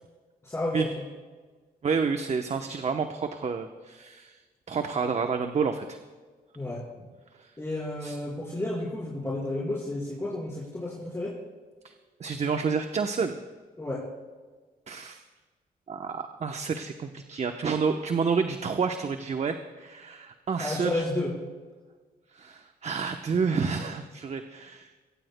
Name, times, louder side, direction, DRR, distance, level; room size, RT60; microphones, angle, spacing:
voice 1, 0.4-0.9 6.5-6.8 7.6-11.4 13.8-14.0 15.0-15.1 20.6-21.3, left 1 dB, 15° left, -8 dB, 4.6 m, -31 dB
voice 2, 1.8-4.4 4.7-6.0 7.4-7.5 8.0-8.2 11.8-11.9 12.2-13.4 14.9-15.2 15.9-21.0 22.3-24.9, right 5 dB, 45° right, 6 dB, 0.9 m, -29 dB
23.5 x 17.0 x 2.2 m, 1.4 s
cardioid pair, 90°, 16 cm